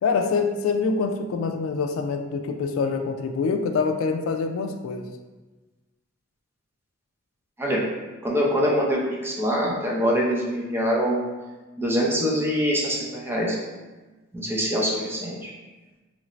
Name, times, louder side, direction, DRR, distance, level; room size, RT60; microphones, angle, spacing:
voice 1, 0.0-5.1, left 4 dB, 85° left, 6 dB, 0.3 m, -25 dB
voice 2, 8.2-11.2 11.8-13.6 14.3-15.5, equal, 10° right, -4 dB, 0.6 m, -24 dB
3.1 x 2.5 x 3.0 m, 1.2 s
head